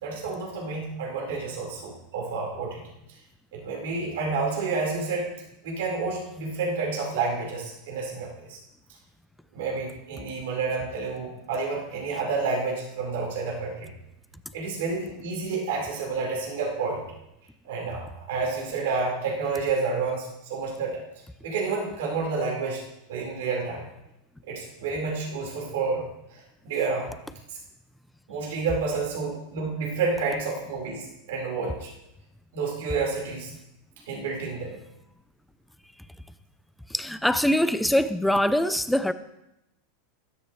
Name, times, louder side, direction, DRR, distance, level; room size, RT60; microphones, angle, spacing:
voice 1, 0.0-2.8 3.5-5.3 5.6-8.6 9.5-13.9 14.5-17.0 17.6-20.9 21.4-22.8 23.1-23.8 24.4-26.0 26.6-27.1 28.3-31.9 32.5-33.5 34.1-34.8, right 4 dB, 80° right, 4.5 m, -29 dB
voice 2, 36.9-39.1, left 1 dB, 5° left, 0.6 m, -23 dB
16.5 x 12.5 x 3.2 m
supercardioid pair, 125°, 0 cm